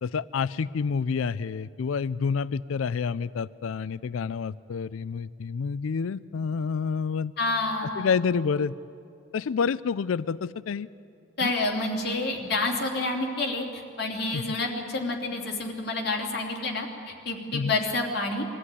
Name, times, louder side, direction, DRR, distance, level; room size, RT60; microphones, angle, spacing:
voice 1, 0.0-7.3 8.0-8.7 9.3-10.9 11.4-11.5 14.3-14.4 17.5-17.8, left 5 dB, 85° left, 18 dB, 0.4 m, -28 dB
voice 2, 7.4-8.1 11.4-18.4, left 2 dB, 50° left, 0 dB, 3.0 m, -29 dB
22.5 x 14.0 x 9.8 m, 2.5 s
head